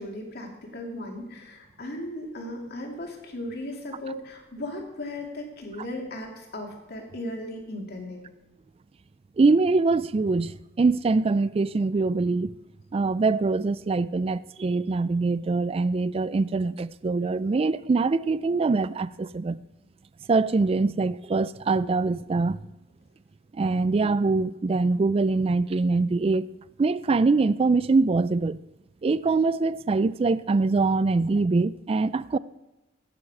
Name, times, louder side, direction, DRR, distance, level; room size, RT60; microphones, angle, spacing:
voice 1, 0.0-8.2, left 1 dB, 50° left, 2.5 m, -36 dB
voice 2, 9.4-12.5 12.9-19.6 20.3-22.6 23.5-26.5 26.8-28.6 29.0-32.4, right 3 dB, 30° right, 0.3 m, -23 dB
16.0 x 9.6 x 4.8 m
head